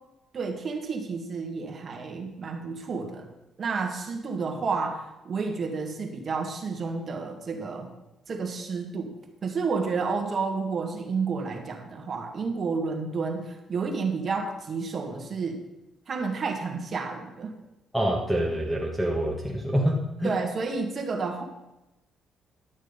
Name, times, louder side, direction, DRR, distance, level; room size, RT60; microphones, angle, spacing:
voice 1, 0.3-3.3 3.6-7.9 8.3-9.1 9.4-15.6 16.1-17.5 20.2-21.4, right 4 dB, 45° right, 4 dB, 1.8 m, -30 dB
voice 2, 17.9-20.3, equal, ahead, -2 dB, 1.6 m, -26 dB
11.5 x 6.3 x 5.3 m, 0.96 s
cardioid pair, 90°, 0 cm